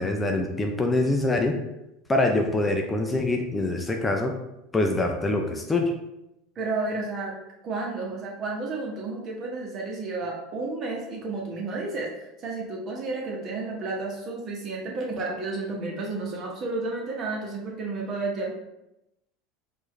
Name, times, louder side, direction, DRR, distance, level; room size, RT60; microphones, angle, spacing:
voice 1, 0.0-1.6 2.1-4.3 4.7-5.9, left 2 dB, 15° left, 3 dB, 0.5 m, -24 dB
voice 2, 6.5-7.3 7.6-12.1 12.4-18.5, right 3 dB, 45° right, -1 dB, 1.2 m, -31 dB
4.6 x 2.6 x 3.1 m, 0.89 s
hypercardioid pair, 80°, 0 cm